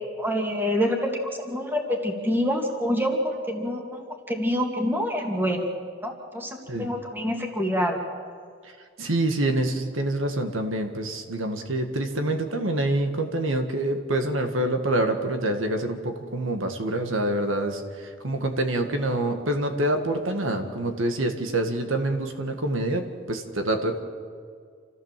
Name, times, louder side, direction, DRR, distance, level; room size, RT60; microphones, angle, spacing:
voice 1, 0.2-1.1 1.4-4.0 4.3-5.6 6.0-8.0, equal, 10° right, 2 dB, 2.4 m, -26 dB
voice 2, 9.0-24.0, right 1 dB, 80° right, 6 dB, 1.8 m, -26 dB
28.0 x 15.0 x 7.6 m, 2.1 s
head